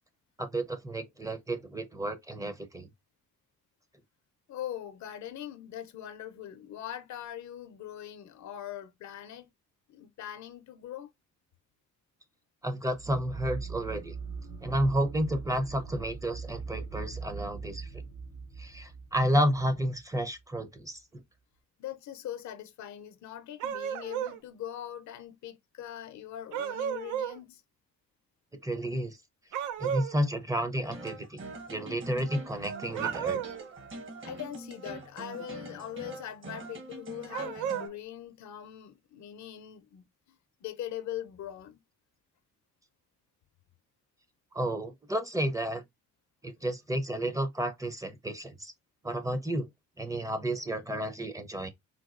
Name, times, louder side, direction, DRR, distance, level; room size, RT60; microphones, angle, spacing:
voice 1, 0.4-2.9 12.6-14.1 14.6-17.9 18.6-21.0 28.6-29.2 29.8-31.4 31.7-33.4 44.5-45.8 46.4-48.7 49.0-49.7 50.0-51.7, right 1 dB, 10° right, 0.5 m, -31 dB
voice 2, 4.5-9.5 9.9-11.1 21.8-27.6 34.2-40.4 40.6-41.8, left 11 dB, 70° left, 0.6 m, -41 dB
sound 1, 12.9-20.2, right 5 dB, 65° right, 1.0 m, -41 dB
sound 2, 23.6-24.4 26.5-27.4 29.5-30.2 32.9-33.7 37.3-37.9, right 9 dB, 85° right, 0.5 m, -33 dB
sound 3, 30.8-37.9, right 2 dB, 40° right, 1.0 m, -43 dB
3.9 x 2.3 x 2.4 m
cardioid pair, 90°, 30 cm